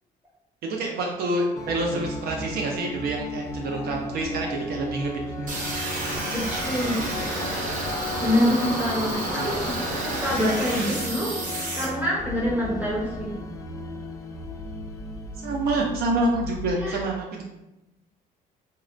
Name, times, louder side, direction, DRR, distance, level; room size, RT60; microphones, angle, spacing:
voice 1, 0.6-5.6 8.2-8.3 9.2-9.5 15.4-17.4, right 2 dB, 70° right, 1 dB, 0.5 m, -27 dB
sound 1, 1.5-16.7, left 2 dB, 20° left, 0.3 m, -35 dB
sound 2, 5.5-11.8, right 1 dB, 50° right, 0.9 m, -30 dB
voice 2, 6.3-7.0 8.2-11.3 11.7-13.3 16.7-17.0, equal, 10° right, -5 dB, 1.1 m, -26 dB
4.1 x 2.1 x 2.5 m, 0.95 s
cardioid pair, 110°, 17 cm